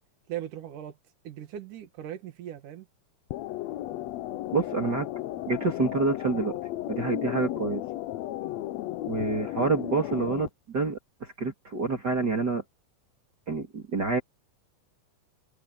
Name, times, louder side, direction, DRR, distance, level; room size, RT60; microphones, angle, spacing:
voice 1, 0.3-1.0 1.3-2.9, right 11 dB, 70° right, 3.4 m, -38 dB
sound 1, 3.3-10.5, left 14 dB, 80° left, 1.5 m, -34 dB
voice 2, 4.5-5.1 5.5-6.6 6.9-7.8 9.1-12.6 13.5-14.2, right 3 dB, 30° right, 2.9 m, -28 dB
omnidirectional pair, 3.8 m